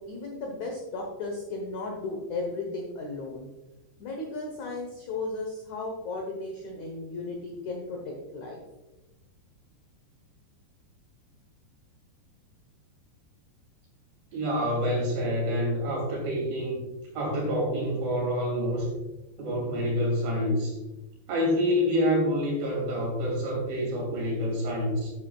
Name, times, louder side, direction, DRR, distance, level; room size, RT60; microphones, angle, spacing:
voice 1, 0.1-3.5 4.0-8.6, left 3 dB, 75° left, 1 dB, 1.7 m, -35 dB
voice 2, 14.3-16.8 17.1-18.9 19.4-20.7 21.3-25.1, equal, 55° right, -2 dB, 4.5 m, -27 dB
12.0 x 8.4 x 2.4 m, 1.0 s
omnidirectional pair, 5.2 m